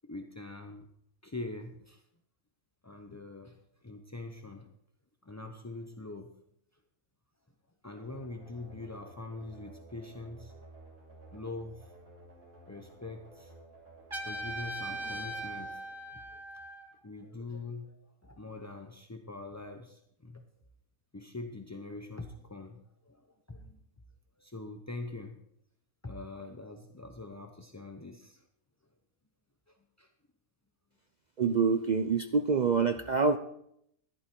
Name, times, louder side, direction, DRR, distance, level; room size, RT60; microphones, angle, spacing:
voice 1, 0.0-0.9 1.2-2.0 2.8-4.7 5.2-6.3 7.8-10.5 11.3-11.9 12.7-13.5 14.3-16.4 17.0-20.4 21.1-22.8 23.0-23.8 24.4-25.4 26.0-28.4 29.7-30.1, left 2 dB, 20° left, 5 dB, 0.4 m, -43 dB
sound 1, 8.0-16.7, right 2 dB, 50° right, 7.3 m, -54 dB
Trumpet, 14.1-17.0, right 1 dB, 20° right, 1.2 m, -39 dB
voice 2, 31.4-33.4, right 5 dB, 75° right, 8 dB, 0.4 m, -26 dB
15.0 x 11.0 x 4.5 m, 0.73 s
omnidirectional pair, 1.5 m